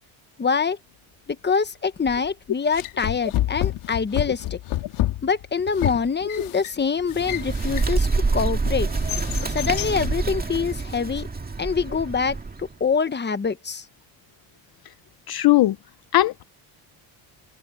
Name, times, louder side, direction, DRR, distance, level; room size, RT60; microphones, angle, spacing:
voice 1, 0.4-0.8 1.3-4.6 5.2-8.9 9.5-11.3 11.6-13.9, left 5 dB, 20° left, 1.2 m, -25 dB
sound 1, 2.1-2.3 2.7-8.2 8.7-10.2, left 14 dB, 80° left, 2.4 m, -29 dB
Bird, 7.0-12.7, right 3 dB, 20° right, 2.0 m, -26 dB
voice 2, 15.3-15.8 16.1-16.4, left 15 dB, 50° left, 0.6 m, -18 dB
open air
cardioid pair, 125°, 49 cm